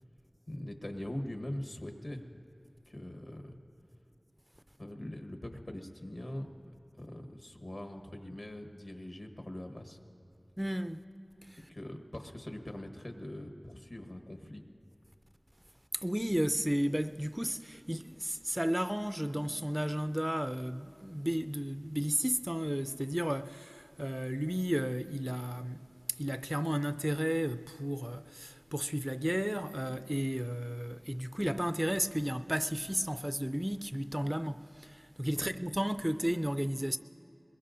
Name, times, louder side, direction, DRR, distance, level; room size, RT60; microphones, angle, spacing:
voice 1, 0.5-2.2 2.9-3.6 4.8-10.0 11.7-14.6 35.3-35.5, left 1 dB, 60° left, 1.2 m, -42 dB
voice 2, 10.6-11.0 11.4-11.7 15.9-25.8 26.1-37.0, equal, 10° right, 0.3 m, -33 dB
22.0 x 21.0 x 2.6 m
wide cardioid pair, 50°, 0 cm